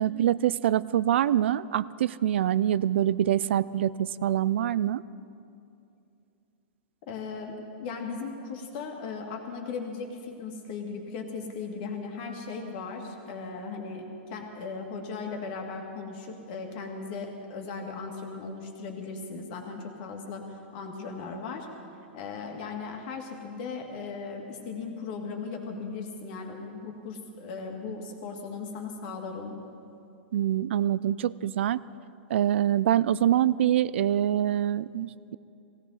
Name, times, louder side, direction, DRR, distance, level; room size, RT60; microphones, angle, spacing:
voice 1, 0.0-5.0 30.3-31.8 32.3-35.4, right 11 dB, 75° right, 18 dB, 0.3 m, -25 dB
voice 2, 7.1-21.7 22.1-29.6, left 4 dB, 50° left, 2 dB, 2.2 m, -37 dB
18.0 x 16.5 x 4.1 m, 2.6 s
hypercardioid pair, 145°, 6 cm